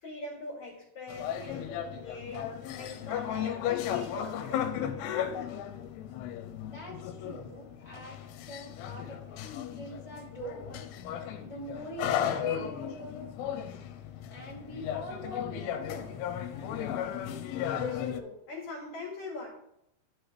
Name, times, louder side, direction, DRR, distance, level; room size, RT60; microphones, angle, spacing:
voice 1, 0.0-2.4 2.8-4.7 17.7-19.5, left 3 dB, 55° left, -3 dB, 3.0 m, -41 dB
sound 1, 1.1-18.2, left 9 dB, 85° left, 2.8 m, -35 dB
voice 2, 6.6-9.4 9.7-10.9 11.4-13.8 14.3-16.9, right 1 dB, 15° right, -7 dB, 1.7 m, -44 dB
12.0 x 4.8 x 3.2 m, 0.79 s
omnidirectional pair, 4.7 m